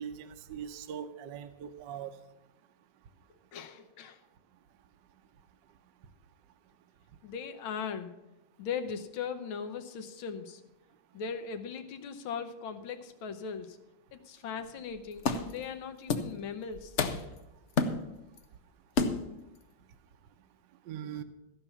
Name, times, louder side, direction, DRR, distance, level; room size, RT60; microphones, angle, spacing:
voice 1, 0.0-2.1 20.9-21.2, right 8 dB, 70° right, 9 dB, 1.3 m, -41 dB
voice 2, 3.5-4.2 7.2-8.1 8.6-10.6 11.1-13.8 14.1-17.0, left 6 dB, 80° left, 7 dB, 1.7 m, -39 dB
sound 1, 14.7-14.8 15.2-15.6 16.1-16.4 16.7-17.4 17.8-18.4 19.0-19.4, left 4 dB, 65° left, 0.7 m, -30 dB
14.5 x 5.6 x 7.0 m, 0.96 s
omnidirectional pair, 2.2 m